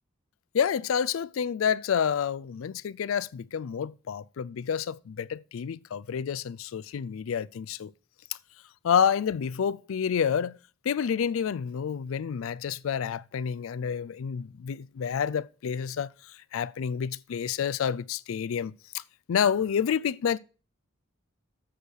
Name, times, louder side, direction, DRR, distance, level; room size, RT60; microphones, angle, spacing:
voice 1, 0.5-7.9 8.8-10.6 10.8-19.0 19.3-20.4, left 7 dB, 75° left, 0.4 m, -29 dB
7.8 x 6.3 x 6.5 m
head